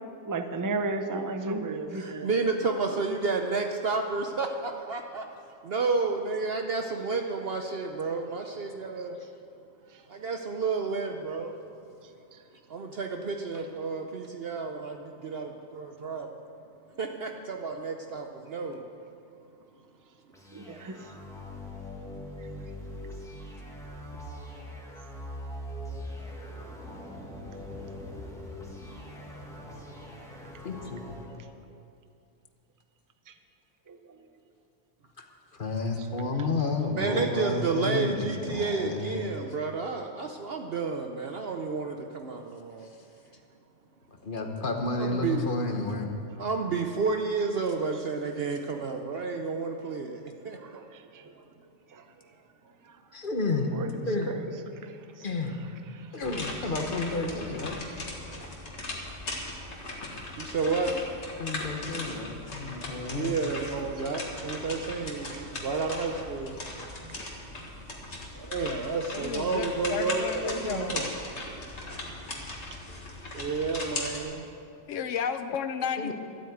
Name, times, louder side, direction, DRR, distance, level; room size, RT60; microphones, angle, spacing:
voice 1, 0.3-2.3 20.5-21.0 33.3-33.4 33.9-34.0 36.2-36.3 50.6-51.3 51.9-52.0 52.8-52.9 53.7-53.9 54.8-55.2 55.9-56.1 58.3-58.5 59.6-59.9 64.1-64.5 67.0-67.2, right 3 dB, 25° right, 7 dB, 0.5 m, -35 dB
voice 2, 1.9-5.2 5.6-9.2 10.1-11.5 12.7-16.3 17.0-18.8 37.0-42.9 45.0-45.4 46.4-50.6 60.4-60.9 63.1-66.6 68.4-71.1 73.3-74.4, right 4 dB, 55° right, 4 dB, 0.9 m, -31 dB
sound 1, 20.3-31.4, left 1 dB, ahead, 1.8 m, -42 dB
voice 3, 30.6-31.0 35.2-35.3 35.5-39.4 44.2-46.2 53.1-53.7 54.1-54.4 55.2-55.6 56.1-57.8 61.4-63.3 76.0-76.1, left 3 dB, 45° left, 3 dB, 1.3 m, -31 dB
sound 2, 56.2-74.2, left 2 dB, 60° left, 2.0 m, -38 dB
voice 4, 69.1-71.1 74.9-76.1, left 7 dB, 75° left, 9 dB, 1.0 m, -32 dB
12.5 x 8.5 x 8.0 m, 2.5 s
omnidirectional pair, 1.3 m